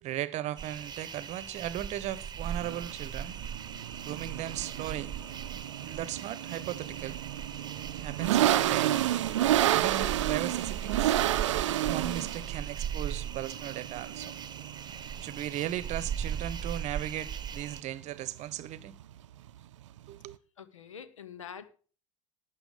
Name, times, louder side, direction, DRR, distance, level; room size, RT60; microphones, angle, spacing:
voice 1, 0.0-3.4 4.0-5.1 5.8-7.2 8.0-9.0 9.7-11.2 11.8-14.3 15.2-19.0 20.1-20.4, right 12 dB, 45° right, 0.9 m, -37 dB
sound 1, 0.6-17.8, right 8 dB, 25° right, 1.1 m, -39 dB
sound 2, 2.4-20.3, right 13 dB, 75° right, 0.5 m, -31 dB
voice 2, 20.6-21.7, left 7 dB, 80° left, 1.0 m, -45 dB
12.5 x 9.2 x 4.9 m
figure-of-eight pair, 70°, 16 cm